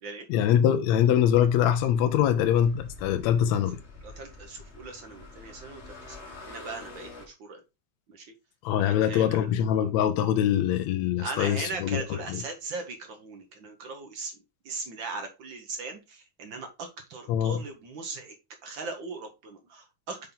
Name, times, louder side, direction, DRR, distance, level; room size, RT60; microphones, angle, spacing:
voice 1, 0.3-3.8 8.6-12.0 12.3-12.4 17.3-17.6, left 10 dB, 75° left, 1.8 m, -23 dB
sound 1, 1.0-7.3, left 2 dB, 35° left, 1.1 m, -47 dB
voice 2, 4.0-7.6 8.1-8.3 8.8-9.4 11.2-14.3 14.6-18.3 18.6-20.3, right 4 dB, 65° right, 1.2 m, -39 dB
5.7 x 5.3 x 3.7 m
omnidirectional pair, 3.4 m